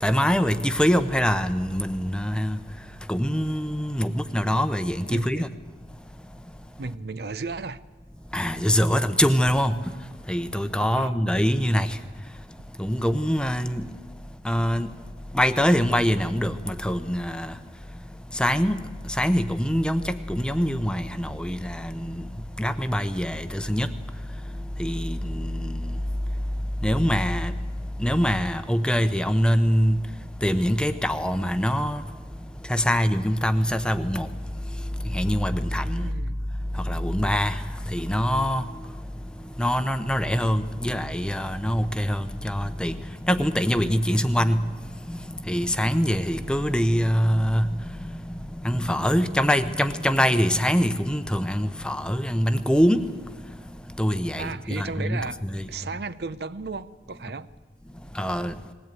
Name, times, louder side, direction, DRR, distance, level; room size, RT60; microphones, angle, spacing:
voice 1, 0.0-2.6 3.1-5.5 8.3-9.9 10.3-12.0 12.8-13.8 14.4-14.9 15.3-17.5 18.3-18.8 19.2-22.3 22.6-23.9 24.8-26.0 26.8-27.5 28.0-30.0 30.4-32.0 32.7-34.3 35.1-36.1 36.8-37.6 37.9-38.6 39.6-43.0 43.3-44.6 45.1-45.2 45.5-47.6 48.6-53.0 54.0-55.6 58.1-58.5, equal, 5° left, 0.8 m, -24 dB
voice 2, 5.1-5.4 6.8-7.8 10.9-11.2 36.0-36.4 54.4-55.4 55.7-57.5, right 4 dB, 65° right, 0.7 m, -34 dB
20.5 x 17.0 x 9.2 m
head